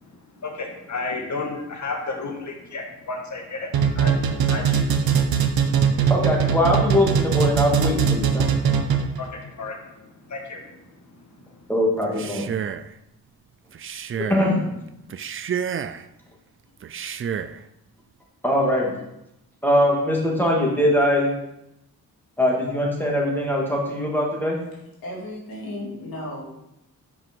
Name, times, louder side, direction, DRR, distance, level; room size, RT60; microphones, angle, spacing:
voice 1, 0.0-5.6 5.9-6.0 9.1-10.8 11.2-11.4, left 3 dB, 55° left, 2 dB, 1.6 m, -33 dB
sound 1, 3.7-9.3, right 7 dB, 90° right, 0.8 m, -20 dB
voice 2, 6.1-8.5 11.7-12.5 14.2-14.7 18.4-18.9 19.6-21.3 22.4-24.6, left 1 dB, 5° left, -3 dB, 2.4 m, -21 dB
Male speech man speaking, 12.0-12.9 13.7-14.5 15.1-16.1 16.8-17.6, right 8 dB, 35° right, 0.4 m, -30 dB
voice 3, 25.0-26.4, left 1 dB, 80° left, -3 dB, 2.4 m, -34 dB
6.2 x 5.1 x 4.5 m, 0.85 s
cardioid pair, 60°, 35 cm